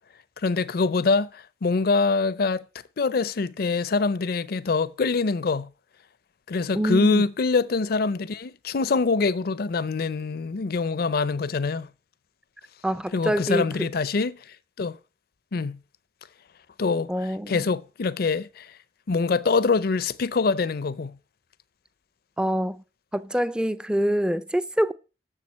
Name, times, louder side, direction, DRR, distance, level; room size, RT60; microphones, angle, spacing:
voice 1, 0.4-2.6 3.0-5.7 6.5-11.9 13.1-15.0 15.5-15.8 16.8-17.1 17.5-18.8 19.1-21.2, left 4 dB, 60° left, 0.5 m, -24 dB
voice 2, 6.8-7.2 12.8-13.9 17.1-17.7 22.4-22.8 23.1-24.9, equal, 5° right, 0.4 m, -25 dB
7.3 x 6.7 x 7.4 m
head